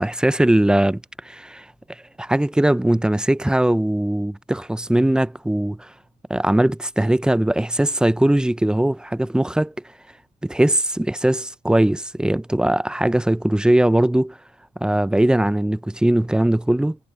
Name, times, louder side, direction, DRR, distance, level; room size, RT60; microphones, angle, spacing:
voice 1, 0.0-1.7 2.2-5.9 6.3-9.7 10.4-14.4 14.8-17.0, right 1 dB, 5° right, 0.5 m, -20 dB
supercardioid pair, 75°, 15 cm